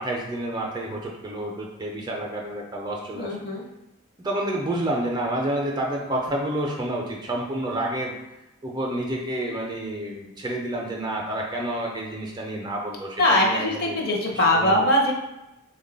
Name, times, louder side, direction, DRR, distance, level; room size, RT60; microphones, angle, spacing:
voice 1, 0.0-3.4 4.2-8.2 8.6-14.0 14.3-14.9, right 1 dB, 20° right, -1 dB, 0.4 m, -29 dB
voice 2, 3.1-3.6 13.2-15.1, left 1 dB, 45° left, 0 dB, 0.6 m, -21 dB
3.5 x 2.2 x 3.8 m, 0.95 s
head